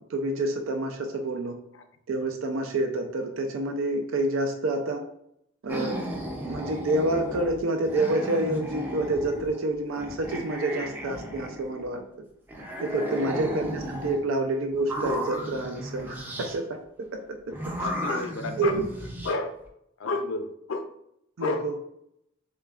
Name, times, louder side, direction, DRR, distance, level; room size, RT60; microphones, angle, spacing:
voice 1, 0.1-1.6 2.1-5.0 5.6-6.0 6.4-12.0 12.8-16.7 17.1-17.2 17.8-17.9 18.6-18.9 19.2-19.3 21.4-21.7, right 2 dB, 70° right, 4 dB, 0.5 m, -28 dB
sound 1, 5.7-9.6 9.9-12.0 12.5-14.2 14.7-16.6 17.5-19.3, equal, 10° right, 0.5 m, -34 dB
voice 2, 13.1-13.5 17.8-18.7 19.2-19.5 20.0-20.9 21.4-21.6, left 3 dB, 65° left, 7 dB, 0.5 m, -31 dB
6.7 x 2.2 x 2.4 m, 0.76 s
head